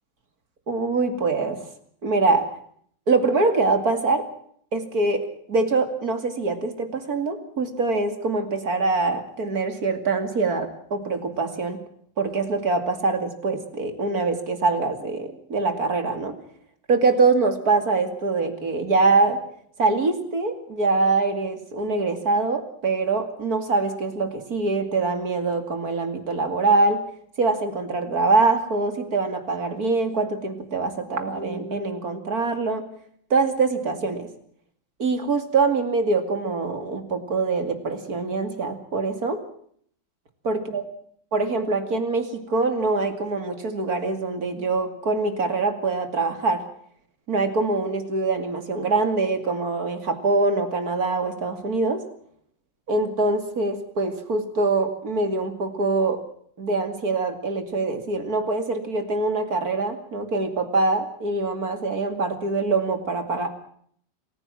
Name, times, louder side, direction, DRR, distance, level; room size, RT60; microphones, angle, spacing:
voice 1, 0.7-1.6 2.0-2.5 3.1-4.2 4.7-11.8 12.2-16.4 16.9-19.4 19.8-27.0 27.4-32.8 33.3-34.3 35.0-39.4 40.4-40.8 41.3-46.6 47.3-52.0 52.9-56.2 56.6-63.5, right 3 dB, 55° right, 7 dB, 3.0 m, -24 dB
27.5 x 15.5 x 7.5 m, 0.63 s
omnidirectional pair, 2.0 m